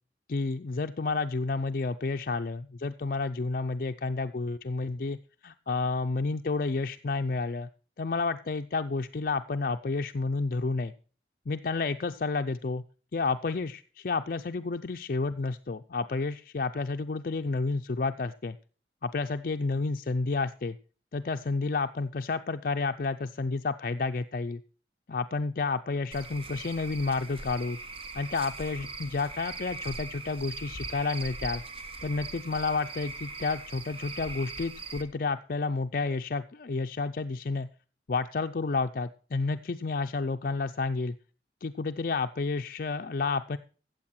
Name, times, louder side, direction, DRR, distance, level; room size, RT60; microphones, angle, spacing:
voice 1, 0.3-5.2 5.4-7.7 8.0-10.9 11.5-12.8 13.1-18.6 19.0-20.8 21.1-24.6 25.1-27.8 28.1-31.6 32.0-37.7 38.1-41.1 41.6-43.6, left 3 dB, 50° left, 7 dB, 0.5 m, -30 dB
Cricket / Frog, 26.1-35.0, right 3 dB, 30° right, 1.4 m, -40 dB
14.5 x 8.0 x 4.3 m, 0.38 s
head